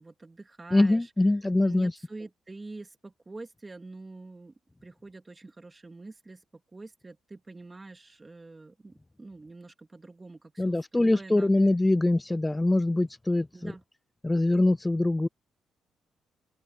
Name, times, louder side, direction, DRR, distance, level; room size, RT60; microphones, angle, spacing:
voice 1, 0.0-1.1 1.6-4.5 4.8-6.4 6.7-11.5 13.5-13.8, right 3 dB, 20° right, 2.3 m, -45 dB
voice 2, 0.7-2.0 10.6-13.7 14.2-15.3, left 2 dB, 15° left, 0.4 m, -23 dB
open air
cardioid pair, 90°, 0 cm